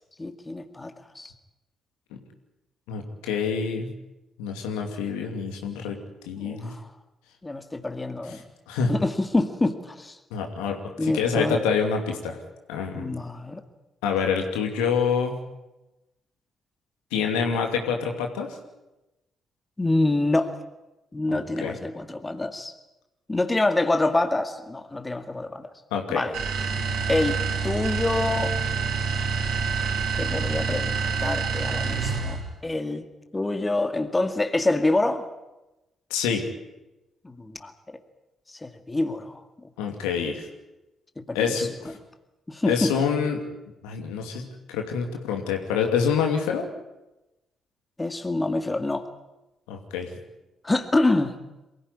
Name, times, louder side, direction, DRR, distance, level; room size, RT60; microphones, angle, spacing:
voice 1, 0.2-1.3 6.4-6.8 7.4-8.4 8.9-10.2 11.0-11.6 12.9-13.6 19.8-20.5 21.1-22.7 23.3-25.7 26.1-26.3 27.1-28.5 30.1-33.1 33.3-35.3 37.2-38.0 38.5-39.4 41.3-41.7 42.5-42.9 48.0-49.0 50.6-51.4, left 2 dB, 20° left, 7 dB, 2.1 m, -26 dB
voice 2, 2.9-3.9 4.4-6.0 6.3-6.7 8.7-8.9 10.3-12.4 12.7-13.1 14.0-15.4 17.1-18.6 21.3-21.7 25.9-26.2 36.1-36.4 39.8-40.4 41.3-42.0 42.7-43.4 43.8-46.7 49.7-50.1, left 6 dB, 85° left, 3 dB, 2.6 m, -26 dB
sound 1, 26.3-32.5, right 5 dB, 75° right, 4.8 m, -27 dB
23.0 x 16.0 x 9.9 m, 0.99 s
hypercardioid pair, 50°, 0 cm